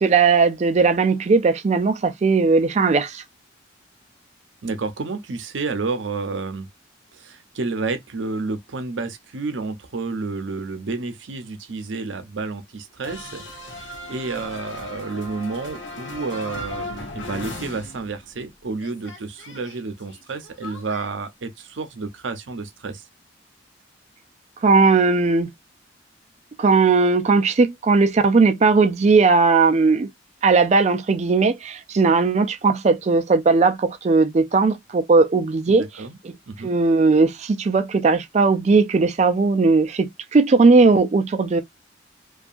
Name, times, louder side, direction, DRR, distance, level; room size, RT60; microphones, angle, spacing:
voice 1, 0.0-3.2 24.6-25.5 26.6-30.1 30.4-36.3 36.6-41.6, right 4 dB, 35° right, 0.3 m, -18 dB
voice 2, 4.6-6.7 7.1-23.1 35.7-36.2 36.5-36.7, right 3 dB, 80° right, 0.6 m, -30 dB
sound 1, 13.0-18.5 18.8-21.1, left 1 dB, 75° left, 0.8 m, -37 dB
2.7 x 2.3 x 2.4 m
head